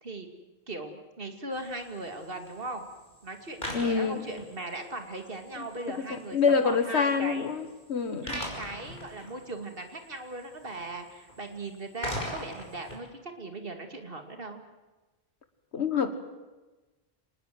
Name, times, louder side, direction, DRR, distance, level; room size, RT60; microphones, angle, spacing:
voice 1, 0.7-2.9 3.2-7.5 8.2-14.6, right 2 dB, 55° right, 5 dB, 2.7 m, -38 dB
sound 1, 1.5-13.0, left 1 dB, 50° left, 6.0 m, -43 dB
voice 2, 3.7-4.3 5.6-5.7 6.0-8.3 15.7-16.1, left 5 dB, 80° left, 9 dB, 1.8 m, -27 dB
25.5 x 20.5 x 7.8 m, 1.1 s
omnidirectional pair, 1.1 m